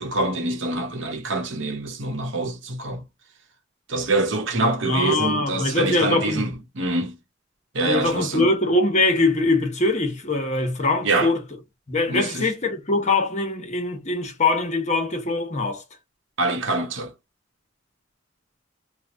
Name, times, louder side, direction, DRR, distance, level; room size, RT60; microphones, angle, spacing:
voice 1, 0.0-3.0 3.9-7.2 7.7-8.5 11.0-11.3 12.1-12.5 16.4-17.1, right 2 dB, 70° right, 1.0 m, -25 dB
voice 2, 4.8-6.5 7.9-11.4 11.9-15.8, left 2 dB, 35° left, 1.0 m, -22 dB
3.1 x 2.2 x 3.8 m
head